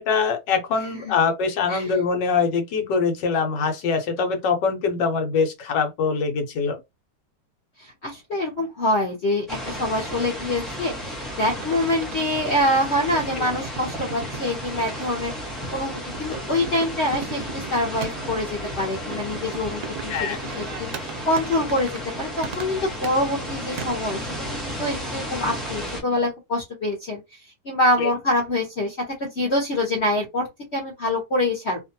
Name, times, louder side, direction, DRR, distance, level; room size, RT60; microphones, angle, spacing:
voice 1, 0.0-6.8 20.1-20.4 28.0-28.1, left 5 dB, 90° left, 1.4 m, -23 dB
voice 2, 7.8-15.3 15.7-21.9 22.2-24.2 24.6-27.2 27.6-31.8, left 1 dB, 45° left, 1.0 m, -25 dB
sound 1, 9.5-26.0, equal, ahead, 0.6 m, -33 dB
sound 2, 11.5-23.9, right 6 dB, 70° right, 1.1 m, -39 dB
3.0 x 2.4 x 2.7 m
omnidirectional pair, 1.8 m